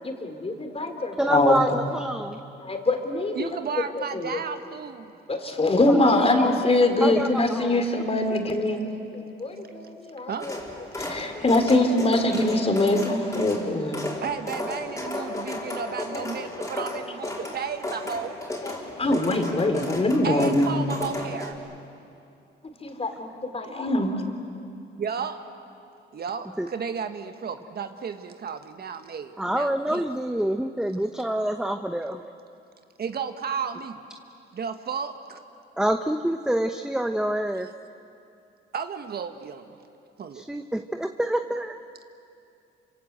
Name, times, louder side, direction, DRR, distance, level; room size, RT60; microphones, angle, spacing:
voice 1, 0.0-1.8 2.6-3.5 4.0-4.4 5.3-8.8 9.1-10.6 11.0-14.0 15.1-15.7 16.1-16.4 17.4-17.5 18.6-20.7 22.8-24.3, left 2 dB, 30° left, 5 dB, 3.4 m, -24 dB
voice 2, 1.2-2.4 5.9-6.5 7.0-7.8 26.6-26.7 29.4-32.2 35.8-37.7 40.3-41.8, right 1 dB, 5° right, 7 dB, 1.0 m, -27 dB
voice 3, 3.4-5.1 10.3-10.5 14.2-18.3 20.2-21.6 25.0-25.4 26.1-30.0 33.0-34.0 34.5-35.4 38.7-39.8 40.2-40.5, right 6 dB, 50° right, 8 dB, 1.6 m, -33 dB
sound 1, 10.4-21.5, left 1 dB, 15° left, 4.7 m, -34 dB
28.0 x 26.0 x 8.0 m, 2.6 s
cardioid pair, 90°, 20 cm